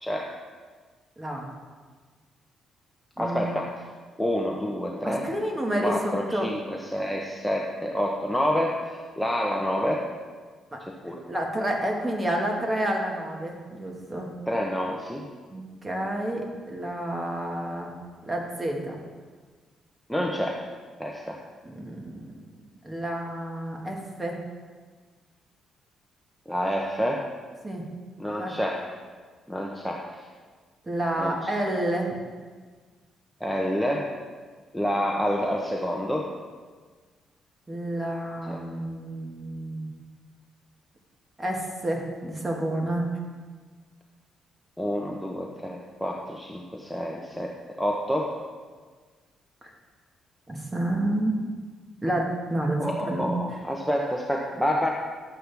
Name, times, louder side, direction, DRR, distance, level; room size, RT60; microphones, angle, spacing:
voice 1, 0.0-0.4 3.2-3.7 4.2-5.3 5.8-10.0 11.0-11.2 14.5-15.2 20.1-20.6 21.0-21.4 26.5-27.2 28.2-28.8 29.5-30.2 31.2-31.3 33.4-34.1 34.7-36.3 38.5-38.6 44.8-48.3 52.8-54.9, equal, ahead, -1 dB, 0.9 m, -28 dB
voice 2, 1.2-1.5 3.2-3.6 5.0-6.5 11.1-14.3 15.5-17.9 18.3-19.0 21.6-22.3 22.8-24.4 27.6-27.8 28.4-28.6 30.9-32.1 37.7-39.9 41.4-43.1 49.6-49.7 50.5-51.4 52.0-53.3, right 1 dB, 20° right, 0 dB, 1.7 m, -29 dB
11.0 x 7.7 x 3.5 m, 1.5 s
cardioid pair, 90°, 0 cm